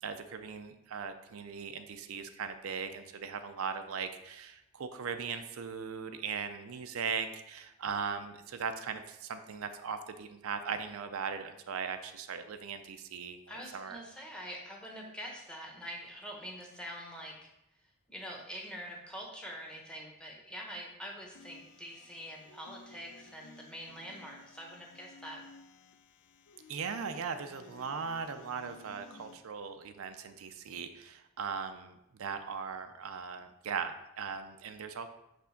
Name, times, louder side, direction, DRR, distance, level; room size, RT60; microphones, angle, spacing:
voice 1, 0.0-14.0 26.7-35.1, right 6 dB, 85° right, 8 dB, 0.5 m, -39 dB
voice 2, 13.5-17.5 18.1-25.4, equal, 5° left, -1 dB, 1.0 m, -45 dB
sound 1, 21.4-29.4, left 3 dB, 55° left, 0.4 m, -56 dB
6.1 x 3.3 x 5.7 m, 0.85 s
head